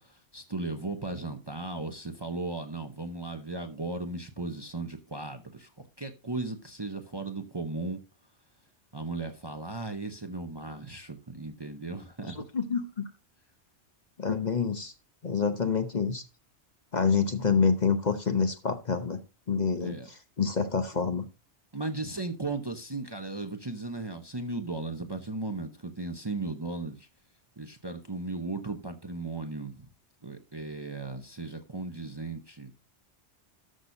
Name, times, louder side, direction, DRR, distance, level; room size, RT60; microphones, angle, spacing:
voice 1, 0.0-5.7 6.0-8.0 8.9-12.4 19.8-20.1 21.7-27.1 27.6-29.9 30.2-32.7, right 2 dB, 25° right, 0.8 m, -36 dB
voice 2, 12.4-13.0 14.2-14.9 15.2-16.2 16.9-19.2 19.5-20.0 20.4-21.3, left 5 dB, 40° left, 0.9 m, -27 dB
12.5 x 6.1 x 2.7 m
omnidirectional pair, 1.2 m